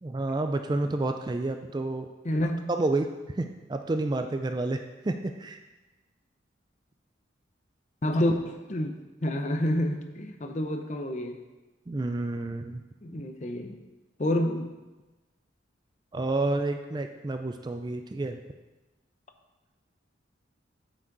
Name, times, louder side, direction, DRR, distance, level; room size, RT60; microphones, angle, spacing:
voice 1, 0.0-2.1 2.7-3.1 3.3-5.6 11.9-12.8 16.1-18.4, right 2 dB, 20° right, 6 dB, 0.3 m, -29 dB
voice 2, 2.2-2.7 8.0-8.9 9.2-11.4 13.0-13.8 14.2-14.7, left 1 dB, 35° left, 5 dB, 0.6 m, -28 dB
9.1 x 6.1 x 3.9 m, 1.2 s
head